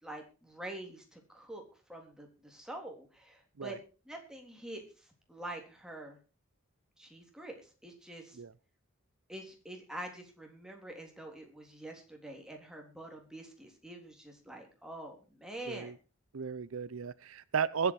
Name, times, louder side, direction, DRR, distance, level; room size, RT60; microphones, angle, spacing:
voice 1, 0.0-1.6 1.9-3.8 4.1-6.2 7.0-8.4 9.3-15.9, right 1 dB, 5° right, 1 dB, 3.5 m, -46 dB
voice 2, 16.3-17.9, right 6 dB, 75° right, 19 dB, 0.6 m, -34 dB
22.0 x 8.4 x 4.8 m, 0.35 s
head